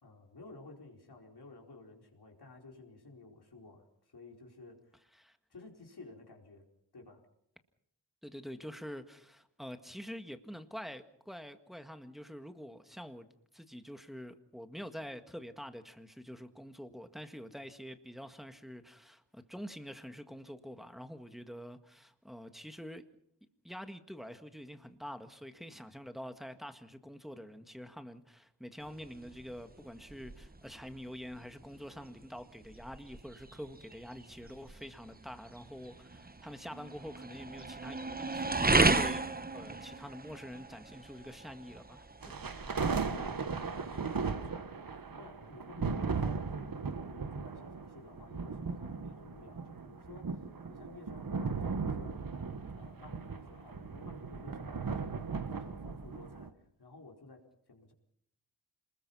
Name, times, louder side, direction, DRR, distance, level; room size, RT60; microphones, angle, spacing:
voice 1, 0.0-5.1 5.5-6.6 6.9-7.2 42.6-42.7 43.1-57.9, left 3 dB, 65° left, 4.7 m, -54 dB
voice 2, 8.2-13.3 13.5-23.0 23.6-42.4, equal, ahead, 1.7 m, -46 dB
sound 1, 28.8-44.3, right 3 dB, 20° right, 1.0 m, -36 dB
sound 2, 42.2-56.5, right 5 dB, 55° right, 1.5 m, -37 dB
27.5 x 20.5 x 5.6 m
wide cardioid pair, 80°, 41 cm